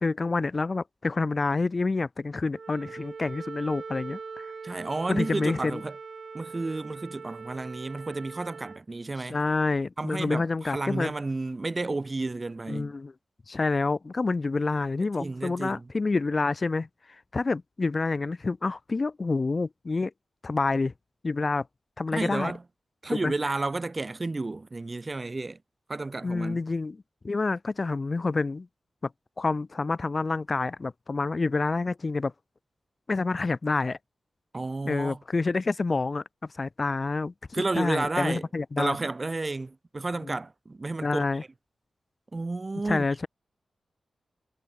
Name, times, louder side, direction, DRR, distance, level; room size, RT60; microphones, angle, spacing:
voice 1, 0.0-4.5 5.1-5.8 9.3-11.1 12.7-13.1 13.5-16.9 17.3-20.1 20.4-20.9 21.2-21.7 22.0-22.5 23.2-23.3 26.2-27.0 27.2-28.7 29.4-32.3 33.1-34.0 34.8-36.2 36.6-39.0 40.2-40.4 41.0-41.4 42.9-43.3, left 3 dB, 40° left, 0.8 m, -28 dB
Wind instrument woodwind instrument, 2.5-8.8, right 5 dB, 60° right, 5.1 m, -42 dB
voice 2, 4.6-6.0 6.3-9.4 10.0-12.9 15.0-15.9 22.1-22.6 23.0-25.6 25.9-26.6 34.5-35.2 37.5-38.5 38.8-41.2 42.3-43.3, right 3 dB, 35° right, 0.7 m, -31 dB
wide cardioid pair, 85°, 0 cm